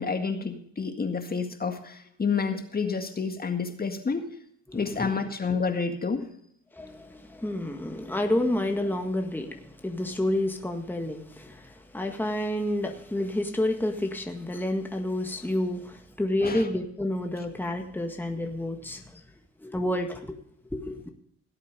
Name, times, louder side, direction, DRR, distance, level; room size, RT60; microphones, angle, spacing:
voice 1, 0.0-4.3 4.7-6.3 16.4-16.7, left 5 dB, 30° left, 1.9 m, -29 dB
voice 2, 4.7-5.1 6.7-19.2 19.6-20.4 20.7-21.0, left 1 dB, 5° left, 1.8 m, -29 dB
17.5 x 8.3 x 5.3 m
cardioid pair, 90°, 30 cm